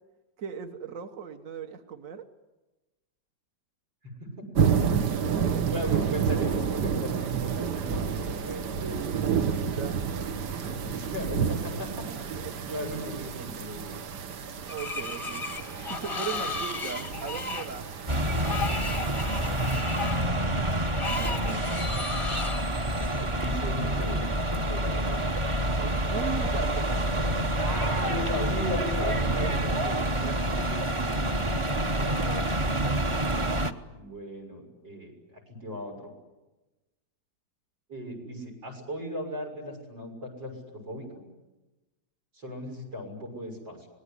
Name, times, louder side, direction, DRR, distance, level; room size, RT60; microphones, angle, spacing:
voice 1, 0.4-2.2 8.8-11.0 12.3-12.5 13.0-13.1 14.7-15.4 15.9-17.9 23.0-23.2 25.8-27.2 29.4-29.7 32.1-33.3 42.7-42.8, right 6 dB, 50° right, 7 dB, 1.5 m, -39 dB
voice 2, 4.0-4.5 4.9-5.1 5.7-9.1 10.8-12.1 12.6-13.9 19.2-21.7 23.2-24.2 24.5-25.2 27.6-31.3 32.0-32.3 33.9-35.1 35.5-36.1 37.9-41.3 42.3-43.9, equal, 85° right, 4 dB, 7.2 m, -38 dB
sound 1, 4.6-19.8, right 7 dB, 65° right, 1.7 m, -30 dB
Screech, 14.7-22.6, left 3 dB, 20° left, 0.8 m, -35 dB
sound 2, 18.1-33.7, right 1 dB, 20° right, 0.9 m, -27 dB
26.0 x 20.0 x 9.8 m, 1.1 s
omnidirectional pair, 2.0 m